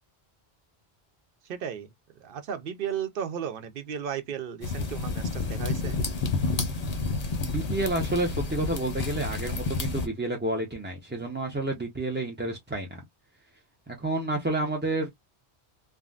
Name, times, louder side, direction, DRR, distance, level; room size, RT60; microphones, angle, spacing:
voice 1, 1.4-1.9 2.2-6.0, right 8 dB, 60° right, 0.8 m, -34 dB
sound 1, 4.6-10.1, left 3 dB, 40° left, 0.7 m, -30 dB
voice 2, 7.4-13.0 13.9-15.1, right 2 dB, 15° right, 0.4 m, -30 dB
3.5 x 2.1 x 2.4 m
omnidirectional pair, 1.1 m